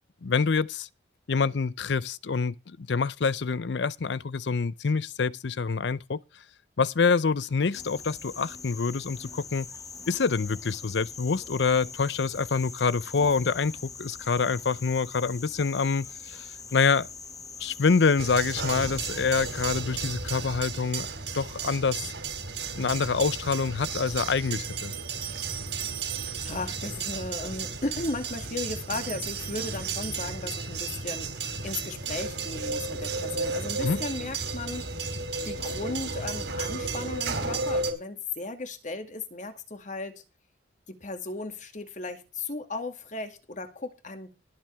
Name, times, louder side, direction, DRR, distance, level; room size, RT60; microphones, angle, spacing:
voice 1, 0.2-0.9 1.3-6.2 6.8-9.7 10.1-17.1 17.6-21.1 21.3-22.1 22.7-24.9 33.8-34.0, left 5 dB, 65° left, 0.6 m, -26 dB
sound 1, 7.7-19.8, left 5 dB, 20° left, 1.0 m, -43 dB
sound 2, 18.2-37.9, right 4 dB, 70° right, 3.0 m, -33 dB
sound 3, 24.1-26.9 27.8-30.9, right 13 dB, 50° right, 1.9 m, -42 dB
voice 2, 26.4-34.9 35.4-40.2 40.9-44.3, left 3 dB, 40° left, 2.2 m, -36 dB
20.0 x 7.5 x 3.5 m
head